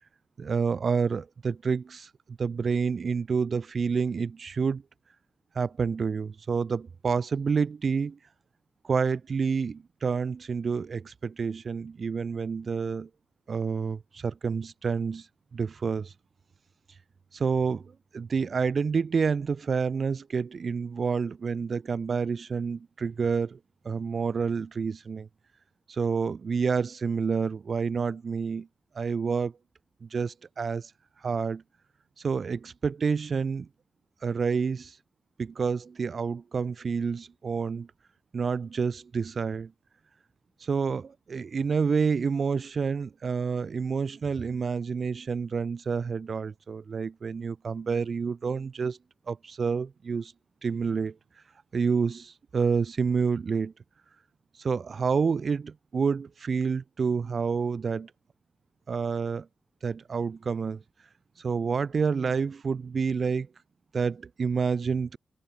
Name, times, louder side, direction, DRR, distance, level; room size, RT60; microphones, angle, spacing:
voice 1, 0.4-4.8 5.5-8.2 8.8-13.1 13.5-15.3 15.5-16.1 17.3-23.6 23.8-25.3 25.9-28.7 28.9-29.5 30.0-30.9 31.2-31.6 32.2-33.7 34.2-35.0 35.4-37.9 38.3-39.7 40.6-49.0 49.3-50.3 50.6-51.2 51.7-53.7 54.6-58.1 58.9-59.5 59.8-60.8 61.4-63.5 63.9-65.2, right 5 dB, 50° right, 0.6 m, -28 dB
wide cardioid pair, 150°, 0 cm